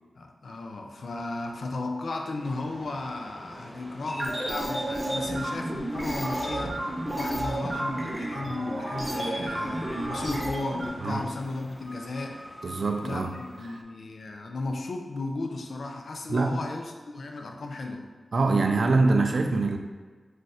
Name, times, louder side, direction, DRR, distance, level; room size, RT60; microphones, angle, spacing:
voice 1, 0.2-12.4 13.0-18.1, left 2 dB, 75° left, 3 dB, 0.3 m, -35 dB
sound 1, 2.4-13.8, equal, 5° left, 0.5 m, -46 dB
sound 2, 4.1-10.9, right 1 dB, 30° right, 0.7 m, -31 dB
voice 2, 12.6-13.3 13.7-13.8 16.3-16.6 18.3-19.8, right 3 dB, 65° right, 4 dB, 0.3 m, -24 dB
2.5 x 2.3 x 4.0 m, 1.4 s
cardioid pair, 55°, 0 cm